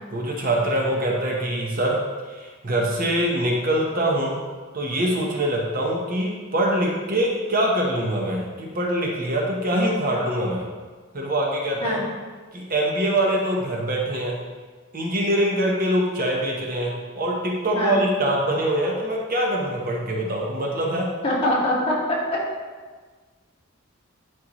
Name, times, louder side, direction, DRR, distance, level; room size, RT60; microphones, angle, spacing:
voice 1, 0.1-2.0 2.3-4.4 4.7-10.6 11.1-12.0 12.5-14.4 14.9-21.1, right 1 dB, 45° right, -1 dB, 1.0 m, -24 dB
voice 2, 21.2-22.2, left 1 dB, 30° left, -6 dB, 2.0 m, -23 dB
11.0 x 4.7 x 3.1 m, 1.4 s
head